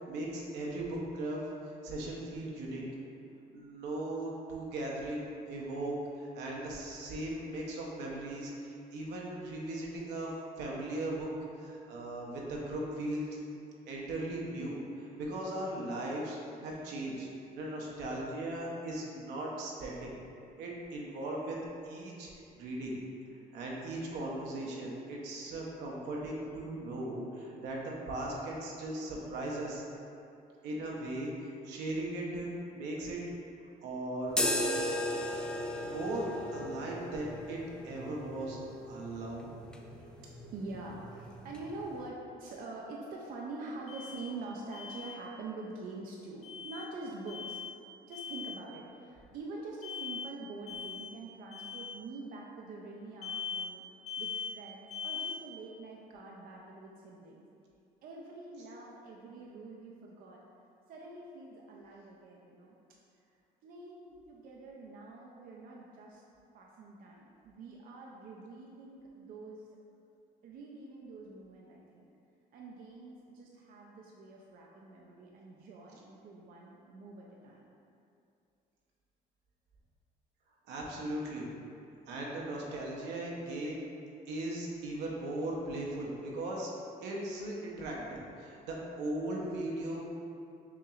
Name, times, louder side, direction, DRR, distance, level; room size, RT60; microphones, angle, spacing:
voice 1, 0.1-2.8 3.5-11.3 11.6-13.4 13.9-16.4 16.6-17.3 17.5-20.1 20.6-21.6 21.8-23.0 23.5-29.8 30.6-33.2 33.8-34.7 35.8-38.6 38.9-39.5 80.7-81.5 82.1-83.8 84.3-86.7 87.0-90.1, right 1 dB, 85° right, -3 dB, 0.8 m, -38 dB
sound 1, 34.3-42.1, left 1 dB, 5° left, 0.3 m, -37 dB
voice 2, 39.6-47.6 48.0-53.8 54.2-57.5 58.0-60.4 60.9-62.7 63.6-66.2 66.5-69.7 70.4-72.0 72.5-77.6, right 3 dB, 60° right, -2 dB, 0.5 m, -45 dB
Alarm, 43.9-44.3 44.7-45.2 46.4-46.9 47.3-47.8 48.1-48.6 49.8-50.3 50.7-51.1 51.5-51.9 53.2-53.7 54.1-54.5 54.9-55.4, left 6 dB, 40° left, 0.6 m, -40 dB
5.8 x 2.9 x 2.4 m, 2.5 s
cardioid pair, 110°, 17 cm